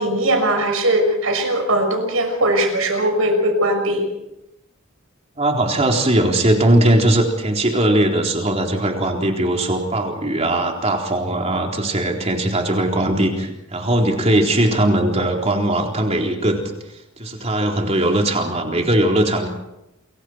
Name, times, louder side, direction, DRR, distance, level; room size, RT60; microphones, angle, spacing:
voice 1, 0.0-4.0, right 1 dB, 80° right, 5 dB, 6.0 m, -19 dB
voice 2, 5.4-16.6 17.2-19.5, right 1 dB, 30° right, 1 dB, 4.0 m, -19 dB
28.5 x 23.5 x 4.6 m, 0.89 s
head